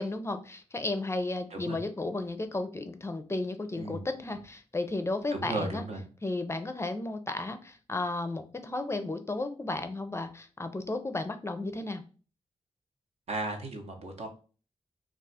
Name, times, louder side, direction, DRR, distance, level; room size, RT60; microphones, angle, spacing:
voice 1, 0.0-5.8 6.2-12.0, left 2 dB, 25° left, 8 dB, 0.4 m, -33 dB
voice 2, 3.8-4.4 5.3-6.1 13.3-14.3, right 2 dB, 70° right, 3 dB, 0.8 m, -36 dB
2.4 x 2.3 x 4.0 m, 0.37 s
cardioid pair, 60°, 12 cm